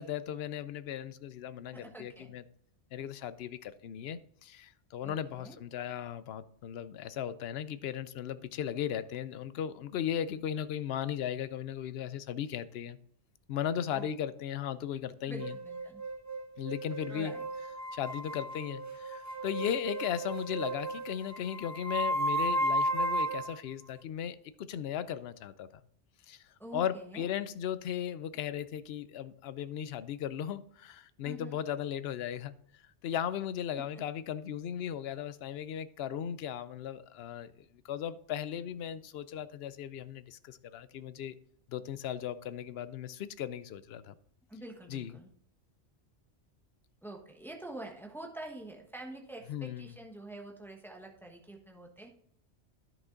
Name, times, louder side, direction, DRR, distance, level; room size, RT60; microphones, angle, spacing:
voice 1, 0.0-2.4 2.9-13.0 13.5-15.5 16.6-17.3 17.9-25.7 26.3-26.4 26.7-32.5 33.0-37.5 37.9-41.3 41.7-44.1 44.9-45.2 49.5-49.9, left 9 dB, 70° left, 0.8 m, -37 dB
voice 2, 1.7-2.3 5.0-5.6 13.9-14.0 15.3-16.0 17.1-17.4 26.6-27.3 31.2-31.6 44.5-45.3 47.0-52.1, right 2 dB, ahead, 1.2 m, -46 dB
sound 1, 15.4-23.6, right 1 dB, 20° right, 0.7 m, -34 dB
10.5 x 6.0 x 3.9 m
omnidirectional pair, 1.1 m